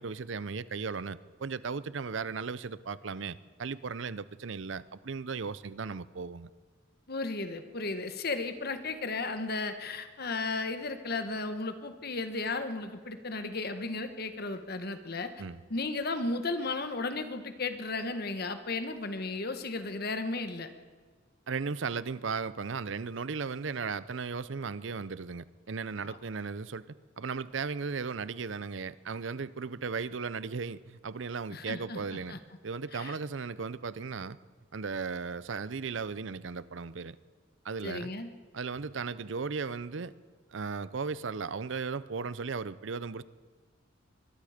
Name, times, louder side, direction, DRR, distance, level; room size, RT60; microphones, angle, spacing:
voice 1, 0.0-6.5 15.4-15.6 21.5-26.8 27.2-32.4 32.6-34.4 34.7-37.2 37.6-38.1 38.5-40.1 40.5-43.2, right 5 dB, 65° right, 17 dB, 0.6 m, -36 dB
voice 2, 7.1-15.3 15.7-20.7 26.0-26.2 31.5-32.4 32.9-33.1 37.8-38.3, left 3 dB, 50° left, 9 dB, 1.4 m, -34 dB
23.5 x 21.5 x 5.1 m, 1.5 s
head